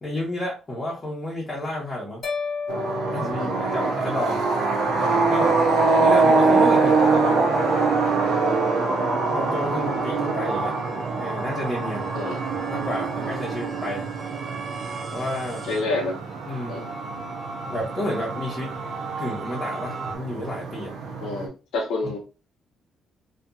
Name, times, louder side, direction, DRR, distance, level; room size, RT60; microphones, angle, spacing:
voice 1, 0.0-2.2 3.1-4.5 5.0-5.6 6.0-7.8 9.3-10.7 11.2-12.1 12.7-14.1 15.1-15.7 16.5-16.8 17.7-18.7 19.2-20.9 22.0-22.1, left 1 dB, 25° left, -5 dB, 1.0 m, -30 dB
sound 1, 2.2-4.5, left 5 dB, 50° left, 0.8 m, -33 dB
sound 2, 2.7-21.5, right 3 dB, 85° right, 0.5 m, -24 dB
voice 2, 3.4-3.9 12.1-12.4 15.7-16.1 16.7-16.9 21.2-22.2, left 3 dB, 80° left, -1 dB, 1.0 m, -28 dB
sound 3, 5.0-20.2, right 4 dB, 65° right, 1.2 m, -38 dB
2.6 x 2.5 x 2.3 m, 0.32 s
cardioid pair, 90°, 0 cm